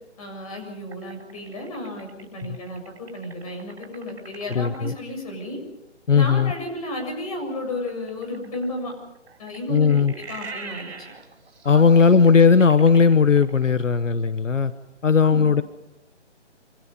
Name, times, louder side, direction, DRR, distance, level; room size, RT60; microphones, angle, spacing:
voice 1, 0.2-5.6 6.1-8.9 9.4-10.9 11.7-11.8 15.2-15.6, left 1 dB, 30° left, 2 dB, 7.5 m, -33 dB
sound 1, 0.9-5.0 7.8-13.9, right 4 dB, 55° right, 6.9 m, -42 dB
voice 2, 4.5-4.9 6.1-6.5 9.7-10.1 11.6-14.7 15.0-15.6, left 5 dB, 85° left, 12 dB, 1.3 m, -17 dB
27.0 x 26.0 x 5.4 m, 0.87 s
hypercardioid pair, 165°, 36 cm